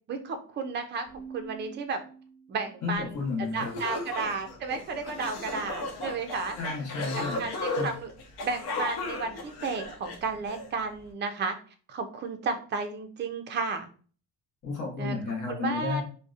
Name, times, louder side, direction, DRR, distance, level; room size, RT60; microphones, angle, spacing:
voice 1, 0.1-1.1 1.3-2.0 2.5-3.1 3.4-6.6 7.1-8.1 8.4-11.6 11.9-13.9 15.0-15.2 15.5-16.0, right 4 dB, 30° right, 6 dB, 0.4 m, -33 dB
Keyboard (musical), 1.1-2.9, right 6 dB, ahead, 1.1 m, -46 dB
voice 2, 2.8-3.8 6.6-7.4 7.8-7.9 14.6-16.0, left 4 dB, 50° left, -2 dB, 1.0 m, -32 dB
sound 1, 3.2-3.3 3.6-10.7, left 2 dB, 80° left, 0.7 m, -35 dB
2.6 x 2.1 x 2.4 m, 0.40 s
cardioid pair, 135°, 38 cm